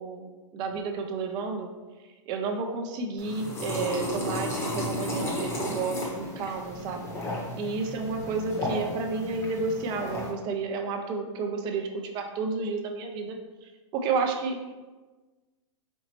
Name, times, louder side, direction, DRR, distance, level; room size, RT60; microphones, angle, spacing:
voice 1, 0.0-1.7 2.3-7.1 7.5-14.7, right 4 dB, 25° right, 4 dB, 0.5 m, -31 dB
sound 1, 3.2-10.3, left 1 dB, 15° left, 0.9 m, -33 dB
4.4 x 3.8 x 2.9 m, 1.2 s
hypercardioid pair, 145°, 16 cm